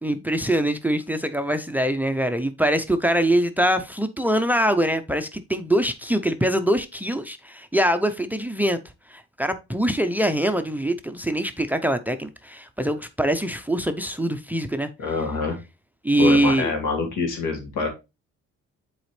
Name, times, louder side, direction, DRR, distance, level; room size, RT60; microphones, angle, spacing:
voice 1, 0.0-8.8 9.1-14.9 16.0-16.7, right 1 dB, 5° right, 0.6 m, -23 dB
voice 2, 15.0-15.6 16.2-17.9, left 3 dB, 80° left, 2.5 m, -25 dB
7.7 x 4.3 x 3.2 m
cardioid pair, 90°, 30 cm